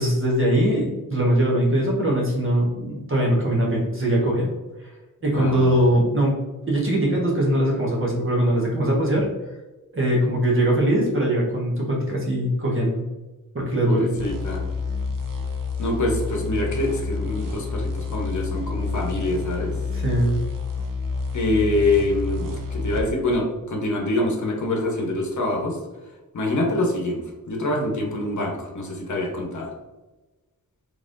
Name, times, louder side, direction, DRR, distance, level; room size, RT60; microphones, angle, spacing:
voice 1, 0.0-4.5 4.8-4.9 5.2-6.3 6.7-9.3 9.9-13.0 13.5-14.1 19.9-20.4, right 1 dB, 35° right, -3 dB, 1.2 m, -21 dB
voice 2, 5.3-5.8 13.9-14.6 15.8-19.7 21.3-25.8 26.3-27.2 27.5-29.7, left 2 dB, 60° left, 1 dB, 1.0 m, -25 dB
sound 1, 14.2-23.1, left 4 dB, 70° right, 0.7 m, -29 dB
4.0 x 3.4 x 2.5 m, 1.1 s
wide cardioid pair, 110°, 34 cm